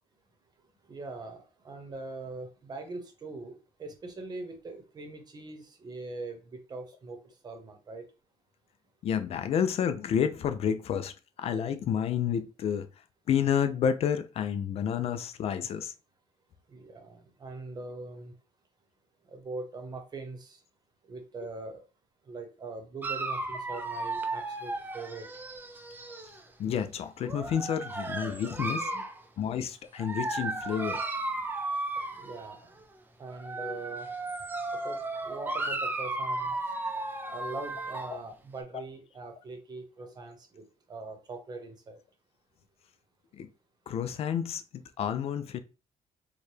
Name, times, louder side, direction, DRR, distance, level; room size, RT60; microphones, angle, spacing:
voice 1, 0.9-3.5 3.8-7.2 7.4-8.0 16.7-18.3 19.3-20.6 21.1-21.8 22.3-25.3 28.9-29.0 32.1-32.6 33.2-34.1 34.8-35.0 35.2-36.5 37.3-40.6 40.9-42.0, right 3 dB, 35° right, 0.9 m, -42 dB
voice 2, 9.0-12.9 13.3-15.9 26.6-28.9 29.4-31.0 33.6-33.8 38.1-38.2 43.3-43.5 43.9-45.6, left 8 dB, 55° left, 0.4 m, -30 dB
Dog, 23.0-26.4 27.2-29.2 30.0-32.6 33.3-38.2, right 2 dB, 15° right, 0.5 m, -34 dB
4.5 x 2.2 x 3.2 m
cardioid pair, 135°, 13 cm